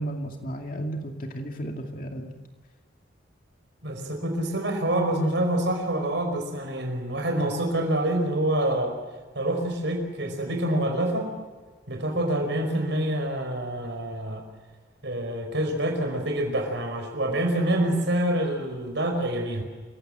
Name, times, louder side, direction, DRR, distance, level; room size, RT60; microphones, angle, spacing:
voice 1, 0.0-2.3, right 1 dB, 45° left, 3 dB, 2.4 m, -33 dB
voice 2, 3.8-8.9 9.3-11.3 11.9-14.4 15.0-19.6, right 1 dB, 65° right, 5 dB, 5.1 m, -26 dB
28.5 x 17.0 x 7.7 m, 1.4 s
head